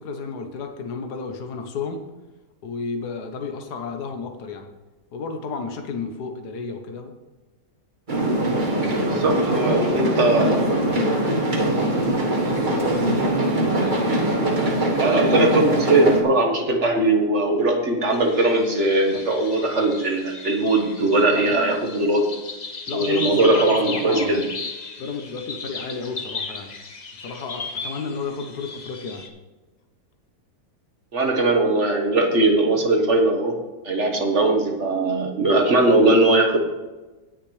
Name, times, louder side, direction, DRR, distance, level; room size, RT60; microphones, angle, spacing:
voice 1, 0.0-2.0 2.6-4.7 5.1-7.1 9.1-13.2 21.3-21.5 22.9-24.4 25.0-26.7 27.2-29.3, left 4 dB, 75° left, 5 dB, 1.7 m, -32 dB
sound 1, 8.1-16.2, right 1 dB, 30° right, 1.5 m, -22 dB
voice 2, 9.0-10.7 15.0-22.2 22.9-24.4 31.1-33.5 33.8-36.6, right 2 dB, 45° right, 3 dB, 1.6 m, -20 dB
sound 2, 18.1-29.3, left 4 dB, 35° left, 0.8 m, -35 dB
18.0 x 6.6 x 3.3 m, 1.2 s
omnidirectional pair, 1.7 m